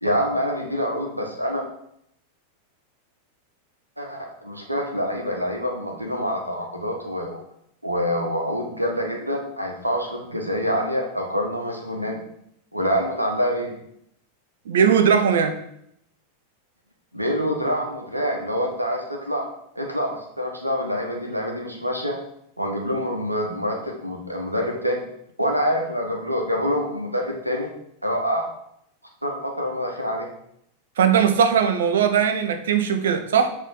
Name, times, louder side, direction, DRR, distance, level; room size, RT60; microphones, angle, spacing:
voice 1, 0.0-1.6 4.0-7.4 7.8-12.2 12.7-13.7 17.1-19.5 19.7-22.2 22.6-25.0 25.4-27.7 28.0-28.5 29.2-30.3, equal, 85° right, 1 dB, 1.4 m, -26 dB
voice 2, 14.7-15.6 31.0-33.5, right 7 dB, 60° right, 8 dB, 0.8 m, -19 dB
7.4 x 3.9 x 5.4 m, 0.74 s
figure-of-eight pair, 90°, 0 cm